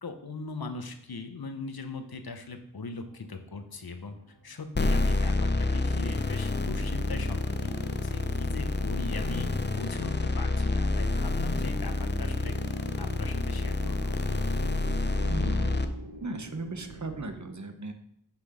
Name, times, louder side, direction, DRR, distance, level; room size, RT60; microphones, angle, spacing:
voice 1, 0.0-4.2 4.4-12.6 13.0-14.2, left 3 dB, 65° left, 7 dB, 0.9 m, -40 dB
sound 1, 3.0-17.4, right 3 dB, 70° right, 0.9 m, -47 dB
sound 2, 4.8-15.9, left 2 dB, 30° left, 0.6 m, -28 dB
voice 2, 15.3-16.0 16.2-17.9, right 3 dB, 45° right, 7 dB, 0.9 m, -37 dB
6.0 x 5.8 x 5.0 m, 0.74 s
wide cardioid pair, 50°, 39 cm